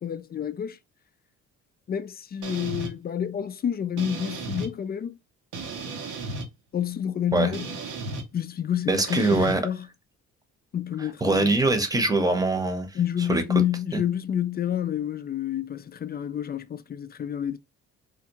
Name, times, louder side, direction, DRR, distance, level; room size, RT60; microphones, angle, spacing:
voice 1, 0.0-0.8 1.9-5.2 6.7-7.8 8.3-9.9 10.7-11.6 12.9-17.6, left 9 dB, 35° left, 0.4 m, -29 dB
sound 1, 2.4-2.9 4.0-4.7 5.5-6.5 7.5-8.2 9.1-9.5, right 3 dB, 85° right, 1.0 m, -34 dB
voice 2, 8.9-9.6 11.2-12.9 13.3-13.4 13.9-14.0, right 2 dB, 10° right, 0.8 m, -22 dB
3.5 x 2.3 x 2.9 m
cardioid pair, 90°, 30 cm